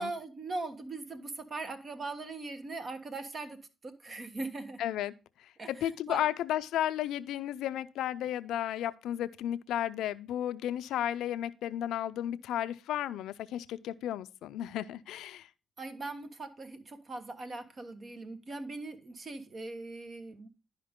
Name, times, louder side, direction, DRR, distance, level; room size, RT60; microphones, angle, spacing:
voice 1, 0.0-4.8 5.6-6.3 15.8-20.5, right 3 dB, 45° right, 1.3 m, -40 dB
voice 2, 4.8-5.1 5.4-5.5 5.8-15.5, left 11 dB, 85° left, 0.4 m, -33 dB
11.0 x 5.1 x 3.6 m
cardioid pair, 70°, 0 cm